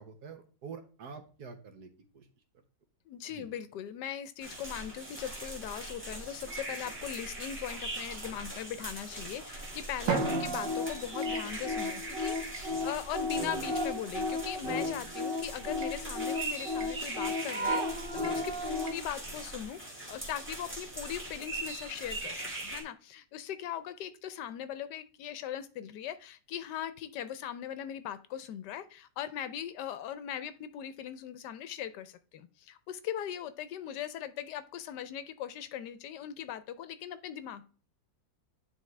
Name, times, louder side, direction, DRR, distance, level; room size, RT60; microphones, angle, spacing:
voice 1, 0.0-1.9 2.1-2.3 3.3-3.5 12.7-12.9, right 5 dB, 65° right, 7 dB, 1.5 m, -47 dB
voice 2, 3.1-19.8 20.1-37.7, left 10 dB, 75° left, 13 dB, 1.1 m, -39 dB
sound 1, 4.4-22.8, right 2 dB, 5° right, 1.7 m, -41 dB
sound 2, 10.1-19.0, left 2 dB, 45° right, 0.8 m, -34 dB
Drum, 10.1-12.0, right 7 dB, 85° right, 1.5 m, -35 dB
9.9 x 3.8 x 3.2 m, 0.38 s
omnidirectional pair, 1.9 m